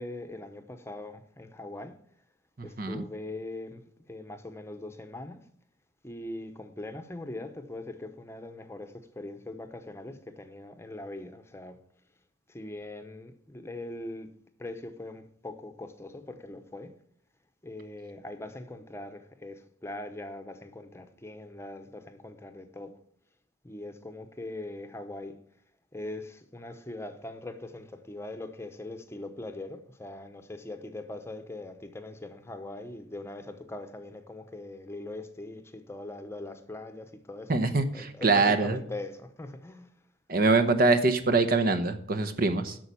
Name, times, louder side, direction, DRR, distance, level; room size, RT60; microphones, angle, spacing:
voice 1, 0.0-2.0 2.6-3.8 4.1-5.4 6.0-11.8 12.5-14.3 14.6-16.9 17.6-23.0 23.6-25.3 25.9-37.6 37.9-39.9, left 2 dB, 15° left, 0.8 m, -41 dB
voice 2, 37.5-38.8 40.3-42.8, right 3 dB, 50° right, 0.9 m, -24 dB
8.7 x 6.3 x 8.4 m
head